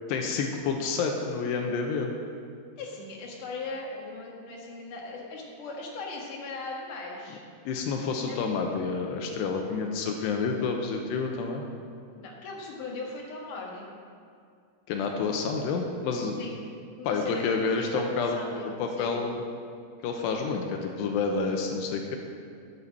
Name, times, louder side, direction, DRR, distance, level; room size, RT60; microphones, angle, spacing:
voice 1, 0.1-2.1 7.7-11.6 14.9-16.4 17.0-18.4 18.8-19.4 20.0-22.2, left 4 dB, 80° left, 3 dB, 2.8 m, -29 dB
voice 2, 2.8-7.4 8.3-8.4 12.1-13.9 16.3-16.6 17.0-19.2, left 3 dB, 60° left, -2 dB, 2.5 m, -39 dB
9.3 x 8.3 x 7.3 m, 2.3 s
omnidirectional pair, 5.1 m